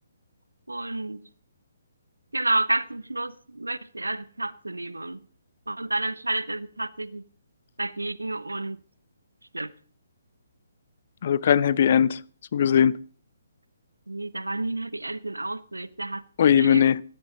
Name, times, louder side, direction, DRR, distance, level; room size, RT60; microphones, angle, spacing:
voice 1, 0.7-1.2 2.3-5.2 5.7-7.2 7.8-8.8 9.5-9.7 14.1-16.2 16.5-16.8, right 2 dB, 80° right, 0.7 m, -30 dB
voice 2, 11.2-12.2 12.5-13.0 16.4-17.0, left 8 dB, 45° left, 0.5 m, -19 dB
16.5 x 10.5 x 3.9 m
figure-of-eight pair, 135°, 0 cm